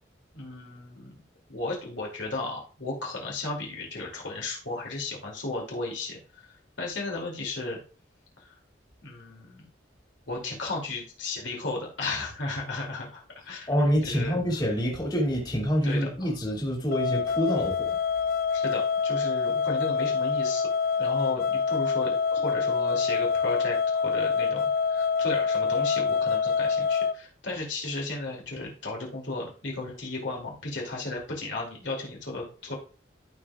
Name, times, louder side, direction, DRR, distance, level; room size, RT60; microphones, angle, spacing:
voice 1, 0.3-1.1 1.5-6.5 6.8-7.8 8.4-8.5 9.0-9.6 10.3-14.6 15.8-16.3 18.5-20.7 21.0-32.8, left 2 dB, 75° left, 2.5 m, -35 dB
voice 2, 13.7-17.8, equal, 20° left, 2.3 m, -26 dB
sound 1, 16.9-27.1, left 5 dB, 50° left, 0.3 m, -26 dB
13.5 x 4.8 x 2.3 m
head